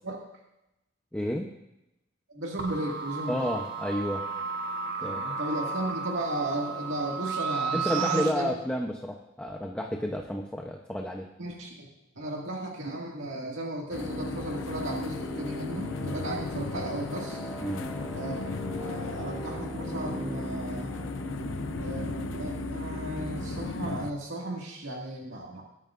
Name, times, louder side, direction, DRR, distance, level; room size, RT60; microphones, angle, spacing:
voice 1, 1.1-1.5 3.3-4.2 5.0-5.3 7.7-11.3 17.6-17.9, equal, 5° left, 0 dB, 0.8 m, -31 dB
voice 2, 2.3-3.5 5.0-8.5 11.4-11.9 12.2-17.4 18.1-20.9 21.8-25.6, right 1 dB, 75° right, -2 dB, 2.1 m, -35 dB
sound 1, 2.6-8.3, right 5 dB, 60° right, 1.3 m, -33 dB
sound 2, 13.9-24.1, left 4 dB, 80° left, 0.7 m, -37 dB
sound 3, 13.9-23.7, equal, 10° right, 2.0 m, -38 dB
19.5 x 12.5 x 2.6 m, 0.90 s
head